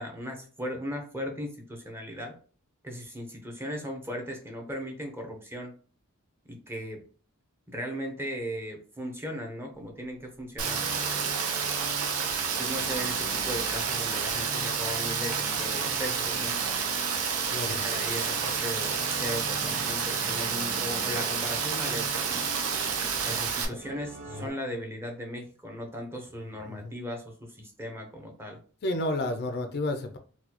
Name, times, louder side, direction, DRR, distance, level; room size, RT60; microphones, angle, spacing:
voice 1, 0.0-2.3 2.8-5.7 6.5-7.0 7.7-10.8 12.6-16.5 17.8-22.5 23.2-28.6, equal, 10° right, 0.7 m, -37 dB
sound 1, 10.6-24.5, right 2 dB, 45° right, 0.8 m, -42 dB
Rain, 10.6-23.7, right 6 dB, 90° right, 0.6 m, -30 dB
voice 2, 17.5-17.8 23.7-23.8 24.3-24.6 26.6-27.0 28.8-30.2, left 1 dB, 50° left, 0.5 m, -31 dB
4.0 x 2.3 x 2.9 m
head